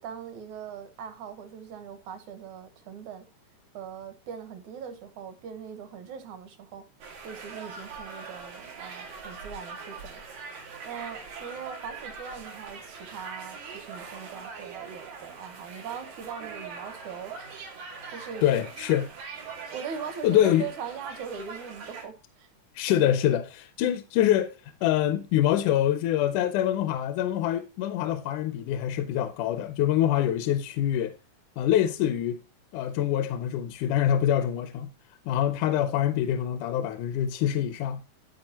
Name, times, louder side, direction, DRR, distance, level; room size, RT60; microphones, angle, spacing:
voice 1, 0.0-3.3 3.7-6.8 7.2-10.3 10.8-17.3 18.1-18.5 19.7-22.5 22.9-23.2, right 7 dB, 70° right, 2.4 m, -40 dB
sound 1, 7.0-22.0, right 5 dB, 85° right, 3.6 m, -42 dB
voice 2, 18.4-19.1 20.2-20.7 22.8-24.6 24.8-31.1 31.6-32.4 32.7-34.9 35.3-38.0, left 11 dB, 80° left, 2.0 m, -25 dB
13.5 x 4.9 x 2.9 m
omnidirectional pair, 3.7 m